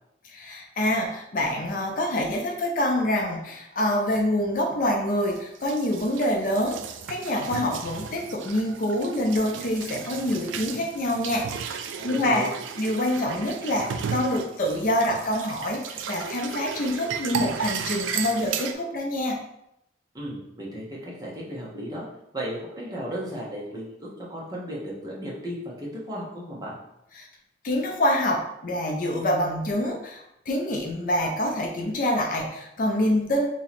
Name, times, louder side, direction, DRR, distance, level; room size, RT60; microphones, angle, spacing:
voice 1, 0.2-6.8 7.1-12.4 12.8-19.4 27.2-27.3 27.6-33.5, left 1 dB, 45° left, 1 dB, 0.5 m, -26 dB
sound 1, 5.1-18.7, right 6 dB, 75° right, 0.3 m, -35 dB
voice 2, 12.0-12.5 20.1-22.0 22.3-26.7, equal, 20° right, -5 dB, 0.9 m, -35 dB
3.0 x 2.8 x 4.1 m, 0.81 s
head